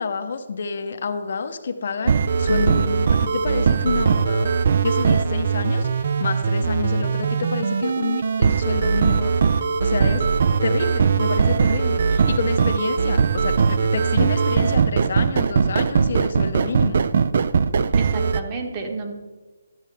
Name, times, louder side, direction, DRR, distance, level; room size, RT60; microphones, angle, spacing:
voice 1, 0.0-4.5 4.8-9.3 9.8-10.3 10.6-17.0, left 5 dB, 60° left, 7 dB, 0.7 m, -28 dB
sound 1, 2.1-18.4, right 5 dB, 55° right, 0.4 m, -20 dB
voice 2, 18.0-19.1, right 3 dB, 30° right, 2 dB, 1.3 m, -30 dB
11.5 x 7.2 x 3.3 m, 1.3 s
figure-of-eight pair, 150°, 0 cm